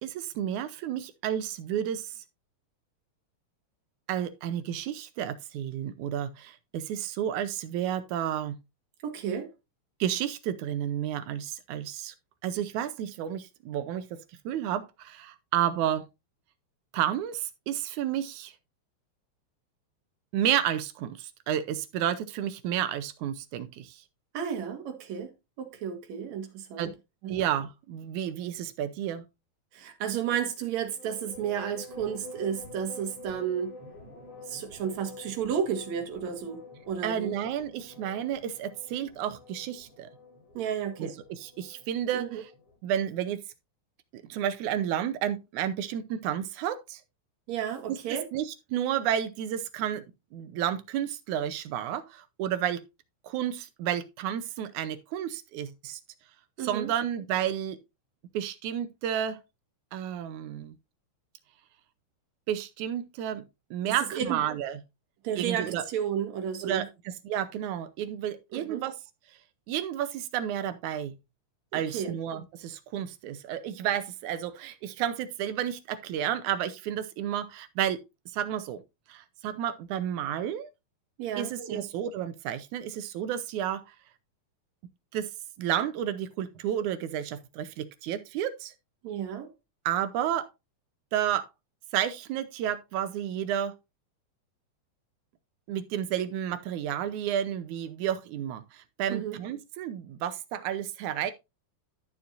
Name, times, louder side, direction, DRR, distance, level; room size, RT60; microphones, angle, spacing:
voice 1, 0.0-2.2 4.1-8.6 10.0-12.1 12.4-16.1 16.9-18.5 20.3-24.0 26.8-27.0 27.3-29.2 37.0-40.1 41.0-42.5 42.8-43.4 44.1-47.0 47.9-50.0 50.3-52.8 53.2-56.0 56.6-57.8 58.3-59.4 59.9-60.8 62.5-63.4 63.7-64.8 65.4-65.9 66.6-69.0 69.7-71.2 71.7-78.0 78.3-78.8 79.1-80.7 81.4-83.8 85.1-85.3 85.6-88.7 89.9-90.5 91.1-91.5 91.9-93.8 95.7-101.3, right 10 dB, 85° right, 2.2 m, -31 dB
voice 2, 9.0-9.5 24.3-25.3 25.6-26.9 27.2-27.3 29.7-33.7 34.5-36.6 36.9-37.3 40.5-41.1 42.1-42.4 47.5-48.2 56.6-56.9 64.1-64.4 65.2-66.8 68.5-68.8 71.9-72.1 81.2-81.8 89.0-89.5 99.1-99.4, right 8 dB, 70° right, 2.7 m, -32 dB
sound 1, 30.9-42.8, left 2 dB, 55° left, 4.9 m, -48 dB
12.5 x 7.0 x 2.6 m
omnidirectional pair, 3.5 m